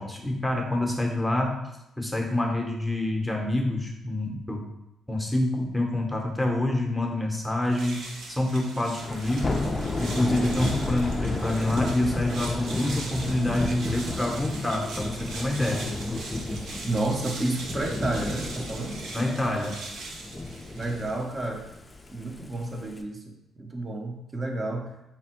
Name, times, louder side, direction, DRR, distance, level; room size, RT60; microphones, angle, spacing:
voice 1, 0.0-1.7 2.0-4.7 5.1-9.7 10.0-15.9 19.1-19.8, left 1 dB, 5° left, 0 dB, 0.8 m, -27 dB
sound 1, 7.6-21.3, right 2 dB, 75° right, 0.7 m, -41 dB
Thunder / Rain, 9.0-23.0, left 2 dB, 25° left, 0.4 m, -32 dB
voice 2, 16.8-19.0 20.8-21.7 22.1-23.2 23.6-25.0, right 2 dB, 30° right, 3 dB, 0.7 m, -30 dB
4.2 x 2.2 x 4.3 m, 0.89 s
cardioid pair, 90°, 0 cm